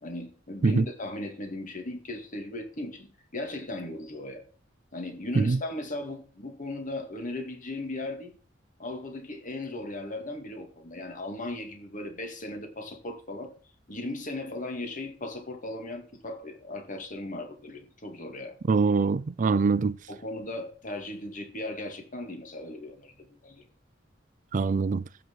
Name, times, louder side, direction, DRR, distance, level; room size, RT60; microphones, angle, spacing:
voice 1, 0.0-4.4 4.9-8.3 8.8-13.5 13.9-18.6 19.5-19.8 20.1-23.7, left 2 dB, 45° left, 2.2 m, -37 dB
voice 2, 18.7-19.9 24.5-25.0, right 4 dB, 45° right, 0.4 m, -23 dB
15.0 x 6.1 x 4.7 m
head